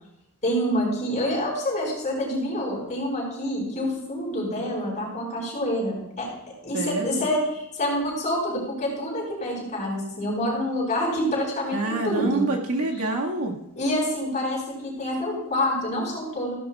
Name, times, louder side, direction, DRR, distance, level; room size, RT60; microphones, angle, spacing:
voice 1, 0.4-6.3 6.6-12.4 13.7-16.5, equal, 35° left, -4 dB, 5.1 m, -27 dB
voice 2, 6.7-7.2 11.7-13.5, right 2 dB, 85° right, 0 dB, 1.8 m, -26 dB
15.0 x 12.5 x 2.4 m, 0.82 s
head